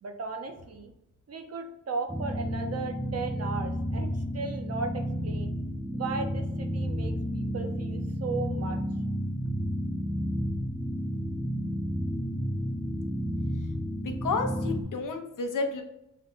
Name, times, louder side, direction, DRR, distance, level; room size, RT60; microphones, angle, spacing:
voice 1, 0.0-0.9 1.3-5.5 5.9-8.8, right 4 dB, 50° right, 5 dB, 0.6 m, -36 dB
sound 1, 2.1-14.8, equal, 5° right, 0.5 m, -31 dB
voice 2, 14.0-15.8, left 4 dB, 80° left, 5 dB, 0.7 m, -31 dB
5.5 x 2.2 x 3.7 m, 0.86 s
wide cardioid pair, 170°, 31 cm